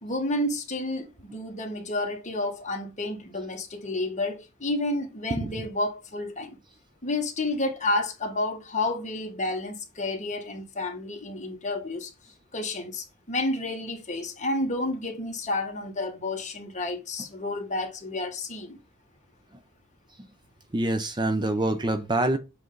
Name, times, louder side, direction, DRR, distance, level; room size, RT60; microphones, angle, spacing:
voice 1, 0.0-6.6 7.0-12.1 12.5-18.8, left 2 dB, 35° left, 1.5 m, -30 dB
voice 2, 20.7-22.4, right 1 dB, 20° right, 0.6 m, -25 dB
7.6 x 3.3 x 3.9 m
head